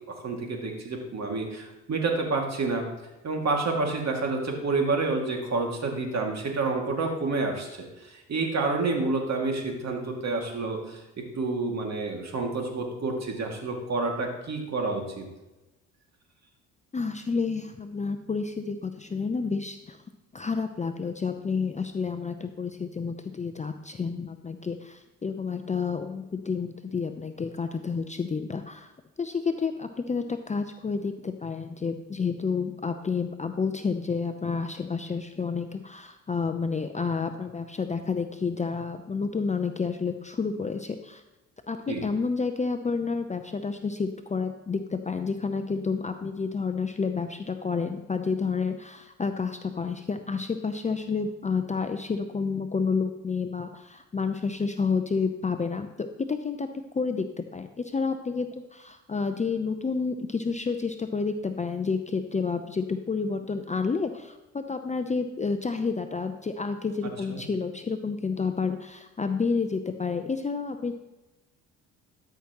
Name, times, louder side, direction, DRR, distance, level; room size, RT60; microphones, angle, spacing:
voice 1, 0.2-2.8 3.2-7.7 8.0-11.0 11.4-15.3 41.9-42.0 67.3-67.4, right 3 dB, 45° right, 2 dB, 2.2 m, -29 dB
voice 2, 16.9-20.0 20.3-28.9 29.2-41.2 41.7-41.8 42.0-56.7 56.9-70.9, left 5 dB, 20° left, 7 dB, 0.6 m, -30 dB
12.5 x 5.9 x 3.0 m, 1.0 s
hypercardioid pair, 55°, 37 cm